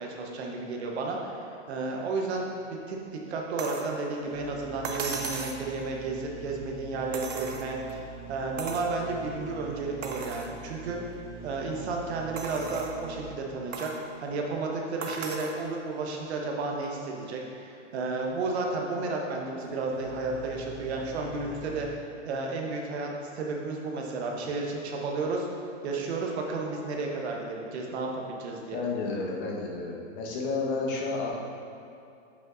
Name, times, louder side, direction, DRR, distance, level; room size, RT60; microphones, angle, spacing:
voice 1, 0.0-3.0 3.3-11.0 11.4-13.9 14.2-21.9 22.2-25.5 25.8-28.8, right 3 dB, 60° right, 0 dB, 1.1 m, -32 dB
sound 1, 3.6-3.9 4.8-5.6 7.1-7.9 8.6-8.9 9.4-9.5 10.0-10.5 11.1-11.2 12.4-13.0 13.7-14.0 15.0-15.6 16.8-16.9, right 4 dB, 85° right, 0.8 m, -36 dB
sound 2, 4.2-13.7 19.6-21.9, right 4 dB, 15° right, 1.5 m, -44 dB
voice 2, 28.7-31.4, left 3 dB, 45° left, -3 dB, 1.2 m, -31 dB
7.6 x 5.5 x 2.6 m, 2.6 s
hypercardioid pair, 135°, 37 cm